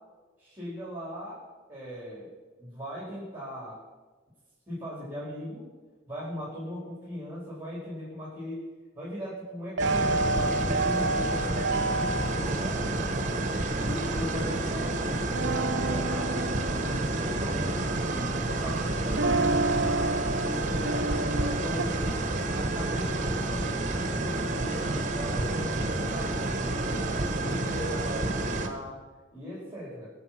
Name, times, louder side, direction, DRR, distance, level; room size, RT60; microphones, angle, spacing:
voice 1, 0.4-1.4 1.7-2.3 2.6-3.8 4.7-5.7 6.1-8.7 8.9-12.8 13.8-22.0 22.5-27.1 27.4-29.1 29.3-30.1, equal, 10° right, -7 dB, 4.4 m, -39 dB
sound 1, 9.8-28.7, right 2 dB, 40° right, 1.5 m, -29 dB
sound 2, 9.8-12.5 15.2-18.6 19.1-21.8, right 2 dB, 65° right, 0.8 m, -30 dB
22.0 x 7.6 x 6.0 m, 1.3 s
head